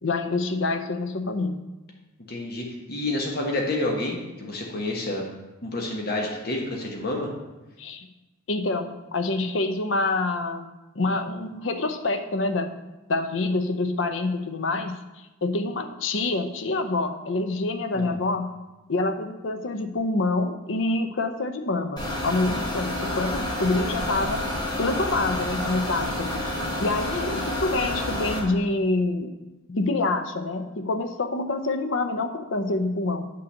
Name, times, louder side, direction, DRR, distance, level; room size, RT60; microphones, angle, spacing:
voice 1, 0.0-1.6 7.8-8.1 8.5-10.7 10.9-12.8 13.1-18.5 18.9-24.4 24.8-26.4 26.8-29.3 29.7-33.3, left 2 dB, 70° left, 8 dB, 0.7 m, -26 dB
voice 2, 2.3-5.3 5.6-7.3 17.9-18.2, left 2 dB, 50° left, 0 dB, 1.2 m, -29 dB
sound 1, 22.0-28.4, left 1 dB, 20° left, 1.7 m, -29 dB
8.6 x 4.0 x 6.5 m, 1.1 s
head